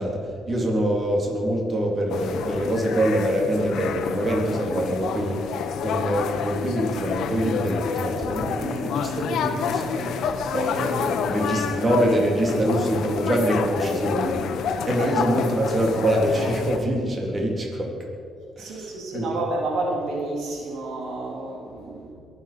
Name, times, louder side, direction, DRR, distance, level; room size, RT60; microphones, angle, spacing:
voice 1, 0.0-17.9 18.6-19.3, right 1 dB, 35° right, -1 dB, 3.4 m, -25 dB
sound 1, 2.1-16.8, left 7 dB, 75° left, 1.0 m, -29 dB
voice 2, 18.6-22.1, right 2 dB, 80° right, -2 dB, 3.6 m, -30 dB
22.5 x 9.3 x 5.2 m, 2.3 s
cardioid pair, 90°, 0 cm